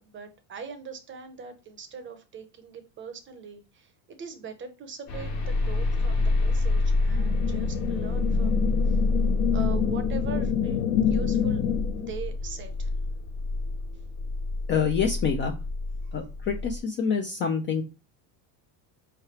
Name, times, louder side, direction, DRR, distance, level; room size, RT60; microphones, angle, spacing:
voice 1, 0.0-9.0 9.5-11.7 11.9-12.9 16.0-16.1, right 6 dB, 25° right, 9 dB, 0.6 m, -41 dB
sound 1, 5.1-16.8, left 2 dB, 50° left, 1.4 m, -28 dB
sound 2, 7.1-12.1, left 9 dB, 85° left, 0.8 m, -28 dB
voice 2, 14.7-15.5 16.1-17.8, left 6 dB, 30° left, 4 dB, 0.3 m, -26 dB
4.6 x 3.3 x 2.9 m, 0.29 s
supercardioid pair, 135°, 47 cm